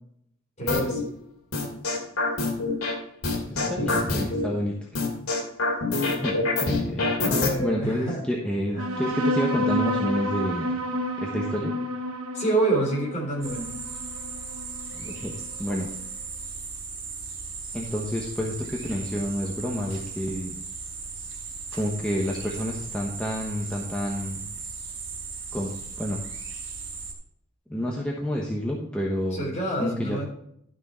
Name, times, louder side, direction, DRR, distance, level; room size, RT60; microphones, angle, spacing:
voice 1, 0.6-1.0 7.2-8.3 8.7-9.0 12.3-13.7 29.3-30.2, right 2 dB, 35° left, -1 dB, 3.9 m, -27 dB
sound 1, 0.7-1.0 1.5-2.9 3.2-4.4 4.9-7.5, left 3 dB, 80° left, 2.6 m, -25 dB
voice 2, 3.5-4.8 6.1-7.3 7.6-10.7 11.2-11.7 14.9-15.3 15.6-15.9 17.7-20.6 21.7-24.4 25.5-26.2 27.7-29.5 29.8-30.2, equal, 5° left, -3 dB, 1.1 m, -29 dB
sound 2, 8.8-15.7, equal, 85° right, 1.0 m, -30 dB
sound 3, 13.4-27.1, right 4 dB, 55° right, 3.7 m, -37 dB
12.0 x 6.4 x 4.3 m, 0.71 s
head